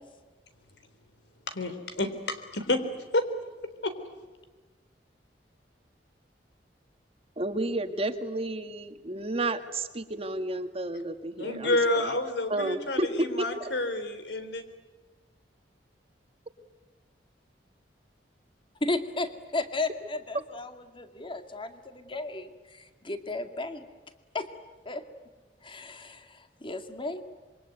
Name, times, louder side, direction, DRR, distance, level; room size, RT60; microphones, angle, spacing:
voice 1, 1.5-2.9 3.1-3.3 3.6-3.9 11.4-14.6, left 2 dB, 85° left, 9 dB, 3.6 m, -29 dB
voice 2, 7.4-11.8 12.5-13.1 13.4-13.7, right 2 dB, 35° right, 8 dB, 1.8 m, -31 dB
voice 3, 18.8-23.9 24.3-24.5 24.9-25.0 25.6-27.2, left 2 dB, 30° left, 8 dB, 2.1 m, -34 dB
26.5 x 23.5 x 9.4 m, 1.3 s
head